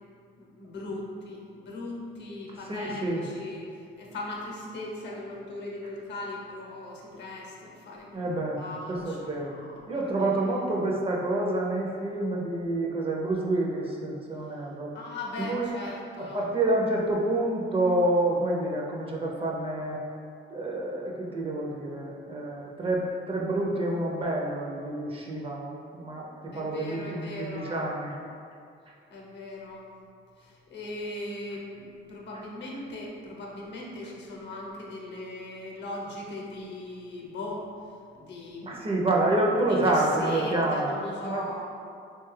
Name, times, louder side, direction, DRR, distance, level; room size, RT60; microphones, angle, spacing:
voice 1, 0.4-3.7 4.0-8.3 8.6-10.1 14.9-16.5 26.5-27.9 29.1-29.9 30.4-37.7 38.1-38.8 39.7-41.7, left 2 dB, 60° left, -2 dB, 0.7 m, -39 dB
voice 2, 2.7-3.2 8.1-8.6 8.9-9.6 9.9-14.9 15.4-15.9 16.2-20.0 20.5-28.2 38.6-41.4, right 2 dB, 30° right, -2 dB, 0.4 m, -28 dB
2.9 x 2.3 x 3.1 m, 2.3 s
cardioid pair, 90°, 20 cm